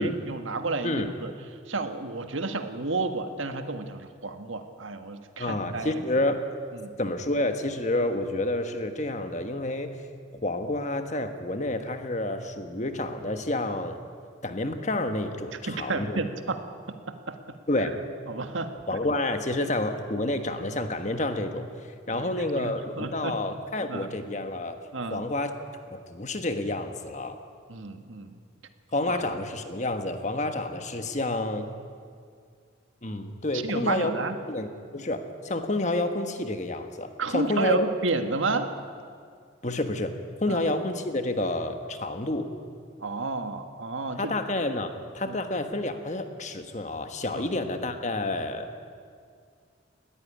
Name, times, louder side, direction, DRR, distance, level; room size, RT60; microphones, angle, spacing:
voice 1, 0.0-1.3 1.7-6.0 6.8-6.9 15.7-16.6 16.9-17.6 18.3-18.7 19.6-19.7 22.1-23.4 23.9-24.1 24.9-25.2 27.7-28.4 29.1-29.2 33.6-34.4 37.2-38.7 40.5-40.6 43.0-44.3 45.2-45.4 47.3-47.5, right 3 dB, 90° right, 7 dB, 1.6 m, -31 dB
voice 2, 5.4-6.4 7.0-10.0 10.4-14.0 14.4-16.2 17.7-18.0 18.9-24.8 25.1-25.5 25.9-27.4 28.9-31.7 33.0-34.2 34.5-37.9 39.6-40.1 40.4-42.5 44.2-48.8, left 2 dB, 40° left, 7 dB, 1.4 m, -29 dB
19.5 x 15.0 x 9.8 m, 2.2 s
head